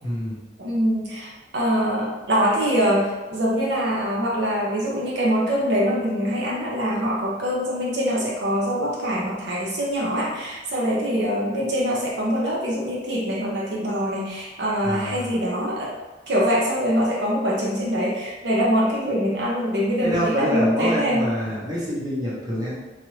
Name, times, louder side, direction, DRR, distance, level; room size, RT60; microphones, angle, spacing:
voice 1, 0.0-0.4 14.8-15.3 20.0-22.7, equal, 20° right, -8 dB, 0.9 m, -26 dB
voice 2, 0.6-15.9 16.3-21.3, equal, 75° right, -5 dB, 0.7 m, -24 dB
3.1 x 2.5 x 3.1 m, 1.1 s
head